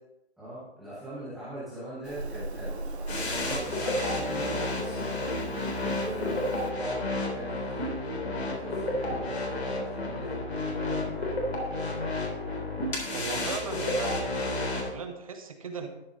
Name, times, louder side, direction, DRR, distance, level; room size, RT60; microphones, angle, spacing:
voice 1, 0.4-11.3, right 1 dB, ahead, -15 dB, 0.7 m, -41 dB
Meow, 2.0-6.7, right 2 dB, 75° right, 1.7 m, -39 dB
sound 1, 3.1-14.9, left 2 dB, 70° left, 3.6 m, -31 dB
voice 2, 13.1-15.9, right 4 dB, 30° right, 5 dB, 1.2 m, -38 dB
13.0 x 7.2 x 3.9 m, 0.87 s
hypercardioid pair, 170°, 33 cm